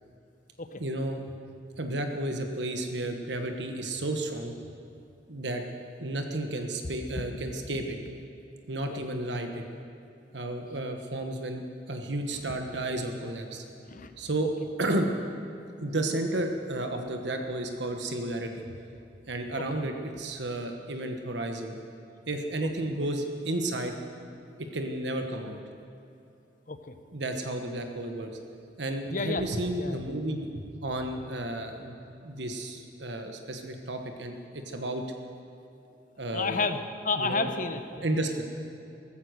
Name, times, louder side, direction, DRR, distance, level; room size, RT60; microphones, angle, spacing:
voice 1, 0.8-1.2 1.8-4.5 5.3-5.6 6.0-8.0 8.7-9.6 10.3-13.6 14.2-14.5 14.8-15.1 15.8-18.7 19.3-21.7 22.3-23.9 24.6-25.6 27.1-28.3 28.8-30.5 30.8-31.9 32.2-35.0 36.2-36.6 37.2-37.5 38.0-38.4, right 1 dB, 70° right, 4 dB, 1.3 m, -32 dB
voice 2, 29.1-29.5 29.8-30.0 36.3-36.8 37.0-38.0, left 4 dB, 45° left, 9 dB, 0.9 m, -31 dB
15.0 x 14.5 x 6.6 m, 2.7 s
head